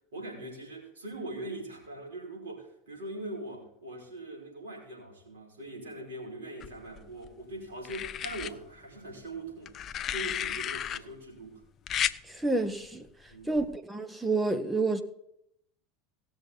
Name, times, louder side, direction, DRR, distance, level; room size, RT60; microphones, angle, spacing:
voice 1, 0.1-11.6 13.3-13.6, right 1 dB, 75° right, 5.0 m, -42 dB
sound 1, 6.6-7.3 7.8-8.5 9.7-11.0 11.9-12.2 13.5-13.8, left 9 dB, 40° left, 0.5 m, -33 dB
voice 2, 12.3-13.1 13.5-15.0, right 3 dB, 5° right, 1.1 m, -29 dB
18.0 x 6.9 x 4.1 m
figure-of-eight pair, 80°, 0 cm